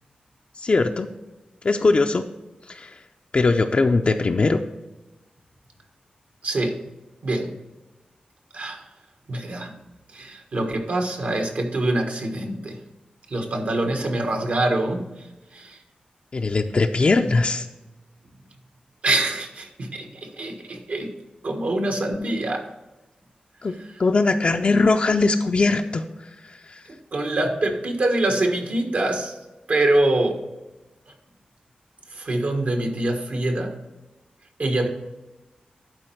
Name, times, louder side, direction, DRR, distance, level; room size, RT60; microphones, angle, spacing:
voice 1, 0.6-1.1 1.6-2.2 2.7-2.9 3.3-4.6 16.3-17.7 23.6-26.0 26.7-26.8, left 3 dB, 45° left, 4 dB, 0.4 m, -20 dB
voice 2, 6.4-6.8 7.2-7.5 8.5-8.8 9.3-9.7 10.1-12.8 13.3-15.1 15.5-15.8 19.0-21.1 21.4-22.7 27.1-29.3 29.7-30.4 32.1-33.7 34.6-34.9, right 2 dB, 65° right, 3 dB, 1.4 m, -24 dB
11.5 x 4.4 x 4.5 m, 1.1 s
wide cardioid pair, 85°, 3 cm